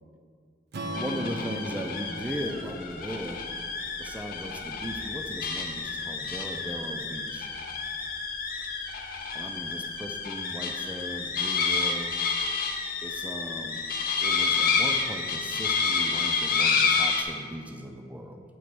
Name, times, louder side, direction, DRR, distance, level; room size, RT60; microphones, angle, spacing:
Strum, 0.7-4.9, equal, 55° right, 0.6 m, -40 dB
sound 1, 0.9-17.2, left 5 dB, 50° left, 0.6 m, -29 dB
voice 1, 0.9-3.7 4.0-7.5 9.3-12.2 13.0-13.8 14.2-18.4, equal, 5° right, 4 dB, 0.4 m, -37 dB
7.5 x 3.1 x 6.0 m, 2.1 s
head